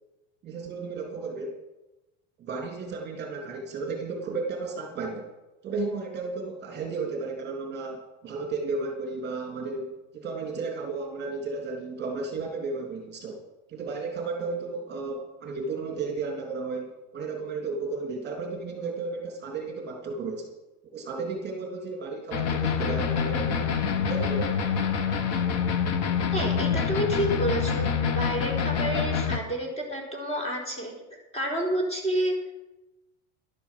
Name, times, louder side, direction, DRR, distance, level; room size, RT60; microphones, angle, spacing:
voice 1, 0.4-1.6 2.4-5.3 5.6-13.4 13.7-20.5 20.9-23.7 24.1-24.5, right 4 dB, 30° right, 1 dB, 3.1 m, -33 dB
sound 1, 22.3-29.4, left 6 dB, 50° left, 1.8 m, -26 dB
voice 2, 26.3-30.9 31.3-32.5, right 1 dB, 20° left, 1 dB, 4.1 m, -29 dB
11.5 x 10.0 x 7.5 m, 1.0 s
supercardioid pair, 125°, 33 cm